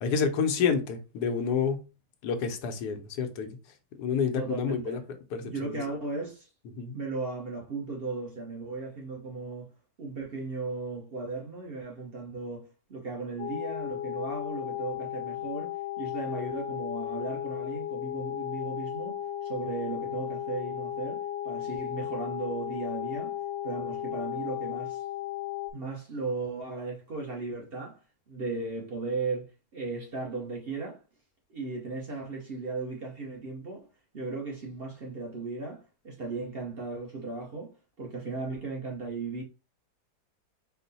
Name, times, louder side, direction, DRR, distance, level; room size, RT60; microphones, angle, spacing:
voice 1, 0.0-1.8 2.2-3.5 4.0-5.0 5.3-5.8 6.8-7.0, left 6 dB, 90° left, 1.3 m, -29 dB
voice 2, 4.3-5.0 5.4-6.5 6.9-9.7 10.0-19.1 19.4-23.3 23.6-25.0 25.7-28.0 28.3-31.0 31.5-33.8 34.1-37.7 38.0-39.4, right 3 dB, 45° right, 0.9 m, -36 dB
sound 1, 13.4-25.7, left 12 dB, 65° left, 0.9 m, -35 dB
4.6 x 2.1 x 4.0 m
omnidirectional pair, 1.7 m